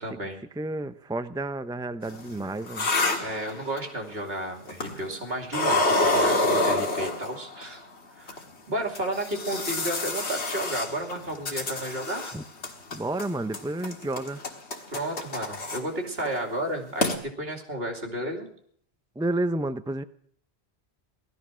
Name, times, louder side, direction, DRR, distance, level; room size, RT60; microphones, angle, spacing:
voice 1, 0.0-0.4 3.2-7.8 8.2-8.4 8.7-12.3 14.9-18.5, right 1 dB, 65° right, 3 dB, 2.9 m, -32 dB
voice 2, 0.6-2.9 12.3-12.4 12.9-14.4 19.2-20.0, right 2 dB, 5° right, 11 dB, 0.4 m, -31 dB
sound 1, 2.1-4.0 4.7-5.2 5.5-7.6 8.3-8.4 8.9-12.4 12.6-13.3 13.5-15.8 16.2-16.4 16.7-16.8 17.0-17.2, left 2 dB, 90° left, 2.0 m, -27 dB
17.0 x 13.0 x 6.2 m, 0.63 s
omnidirectional pair, 1.1 m